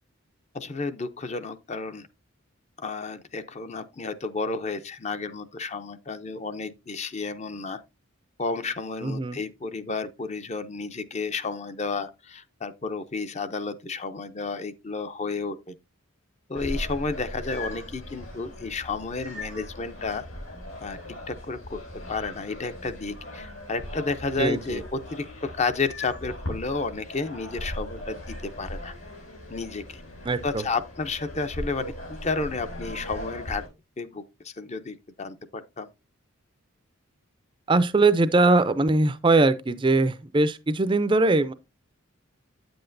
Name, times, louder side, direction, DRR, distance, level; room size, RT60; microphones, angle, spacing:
voice 1, 0.5-2.1 2.8-7.8 8.4-15.8 16.5-20.2 20.8-21.0 21.3-21.8 22.1-28.9 29.5-30.0 30.4-31.9 32.2-33.6 34.0-35.9, left 4 dB, 30° left, 0.5 m, -31 dB
voice 2, 9.0-9.4 24.4-24.8 30.3-30.6 37.7-41.5, right 2 dB, 20° right, 0.4 m, -21 dB
sound 1, 16.5-33.7, left 1 dB, 80° left, 3.8 m, -39 dB
9.3 x 7.8 x 2.5 m
head